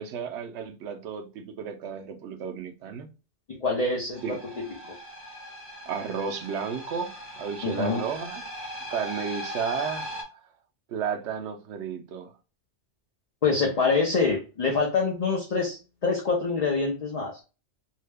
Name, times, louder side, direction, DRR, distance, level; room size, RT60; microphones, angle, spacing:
voice 1, 0.0-3.1 4.2-4.4 5.9-8.4 8.9-10.4 10.9-12.3, right 7 dB, 75° right, 0.9 m, -33 dB
voice 2, 3.6-4.4 4.9-5.0 7.6-8.0 13.4-17.3, left 4 dB, 45° left, 0.6 m, -25 dB
sound 1, 4.1-10.2, equal, 30° right, 1.0 m, -39 dB
2.7 x 2.1 x 3.3 m
omnidirectional pair, 1.2 m